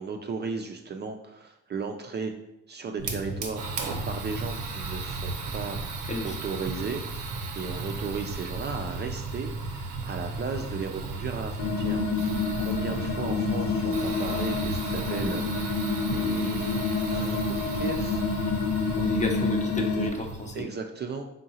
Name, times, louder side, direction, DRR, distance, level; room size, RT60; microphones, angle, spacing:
voice 1, 0.0-2.3 2.7-3.6 4.1-5.8 6.2-12.3 12.6-15.7 16.1-16.8 17.1-18.2 20.5-21.2, right 5 dB, 35° right, 3 dB, 0.4 m, -35 dB
Fire, 3.0-20.6, right 3 dB, 85° right, 0.7 m, -34 dB
voice 2, 6.0-6.4 19.0-20.7, left 1 dB, 25° left, 3 dB, 0.7 m, -32 dB
sound 1, 11.6-20.1, left 4 dB, 85° left, 0.5 m, -28 dB
3.7 x 3.7 x 2.8 m, 0.88 s
cardioid pair, 90°, 30 cm